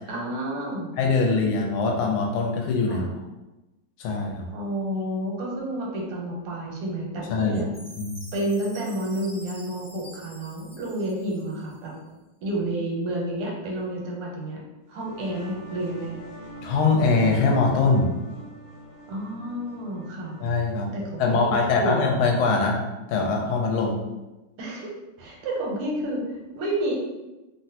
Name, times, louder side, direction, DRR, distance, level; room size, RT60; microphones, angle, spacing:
voice 1, 0.1-0.9 2.9-3.1 4.5-7.7 8.3-11.9 12.4-14.6 14.9-16.1 19.1-20.4 20.9-22.0 24.6-24.9 25.2-26.9, right 1 dB, 85° right, -2 dB, 1.6 m, -30 dB
voice 2, 1.0-3.0 4.0-4.4 7.3-7.6 8.0-8.2 16.6-18.1 20.4-20.9 21.2-22.8 23.1-24.0, left 4 dB, 80° left, 0 dB, 1.4 m, -22 dB
Chime, 7.7-12.0, equal, 25° left, 0.5 m, -47 dB
sound 1, 14.8-22.2, right 1 dB, 60° left, 1.1 m, -45 dB
3.6 x 2.1 x 2.7 m, 1.0 s
omnidirectional pair, 2.4 m